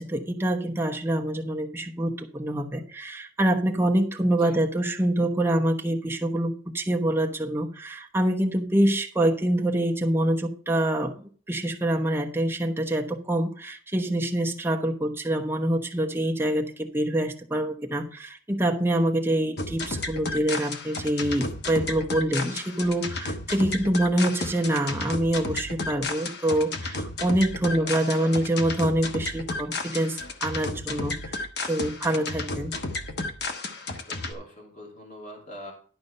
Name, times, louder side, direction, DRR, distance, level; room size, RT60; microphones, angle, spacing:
voice 1, 0.0-32.7, right 1 dB, 10° right, 1 dB, 1.0 m, -26 dB
sound 1, 19.6-34.3, left 2 dB, 55° left, 1.1 m, -33 dB
voice 2, 27.7-28.5 33.9-35.7, equal, 40° left, 0 dB, 2.5 m, -43 dB
11.5 x 5.2 x 5.5 m, 0.43 s
head